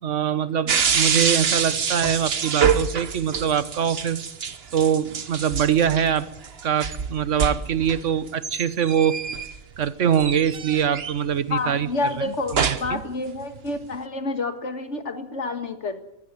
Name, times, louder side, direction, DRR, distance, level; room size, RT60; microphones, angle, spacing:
voice 1, 0.0-4.3 4.7-6.3 6.6-9.2 9.8-13.0, right 8 dB, 85° right, 15 dB, 1.4 m, -23 dB
sound 1, 0.7-9.9 10.1-11.4 12.2-13.0 13.4-13.9, right 6 dB, 55° right, 1.3 m, -26 dB
voice 2, 11.5-16.0, left 3 dB, 75° left, 8 dB, 2.2 m, -29 dB
22.5 x 15.0 x 9.4 m, 0.88 s
omnidirectional pair, 1.2 m